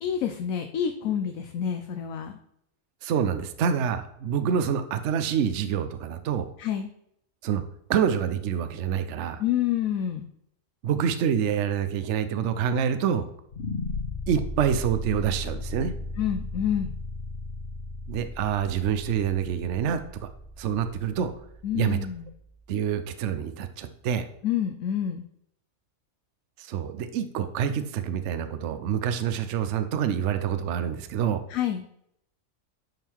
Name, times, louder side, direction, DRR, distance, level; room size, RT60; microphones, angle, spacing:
voice 1, 0.0-2.4 6.6-6.9 9.4-10.3 16.2-16.9 21.6-22.3 24.4-25.2 31.5-31.8, left 9 dB, 75° left, 6 dB, 1.1 m, -28 dB
voice 2, 3.0-6.5 7.4-7.6 7.9-9.4 10.8-13.3 14.3-15.9 18.1-20.3 20.6-21.3 21.7-22.0 22.7-24.3 26.6-31.4, right 8 dB, 65° right, 10 dB, 0.9 m, -27 dB
sound 1, 13.5-22.5, left 2 dB, 55° left, 1.3 m, -36 dB
11.0 x 3.7 x 4.5 m, 0.74 s
omnidirectional pair, 1.5 m